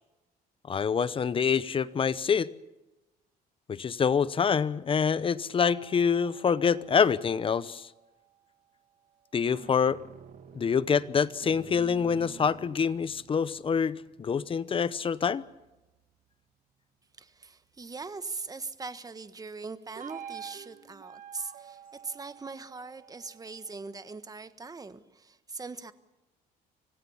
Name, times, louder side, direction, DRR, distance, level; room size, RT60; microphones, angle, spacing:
voice 1, 0.7-2.5 3.7-7.9 9.3-10.0 10.5-15.4, left 6 dB, 30° left, 17 dB, 0.8 m, -26 dB
sound 1, 5.6-8.2 9.3-16.1 20.0-24.2, right 8 dB, 50° right, 1.6 m, -50 dB
voice 2, 17.2-25.9, right 4 dB, 20° right, 12 dB, 1.4 m, -41 dB
25.5 x 17.0 x 7.2 m, 1.0 s
cardioid pair, 110°, 17 cm